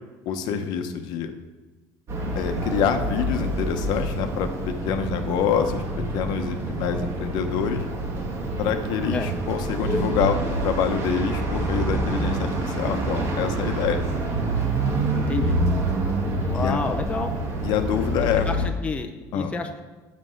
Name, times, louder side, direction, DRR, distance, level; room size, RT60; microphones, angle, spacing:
voice 1, 0.3-1.3 2.3-5.8 6.1-7.8 8.6-14.1 16.5-16.8 17.6-18.5 19.3-19.5, left 8 dB, 60° left, 7 dB, 0.9 m, -26 dB
sound 1, 2.1-18.7, right 2 dB, 35° right, 1.7 m, -27 dB
voice 2, 15.1-15.6 16.4-17.3 18.5-19.9, left 4 dB, 15° left, 4 dB, 0.6 m, -29 dB
7.8 x 6.2 x 6.4 m, 1.2 s
cardioid pair, 145°, 8 cm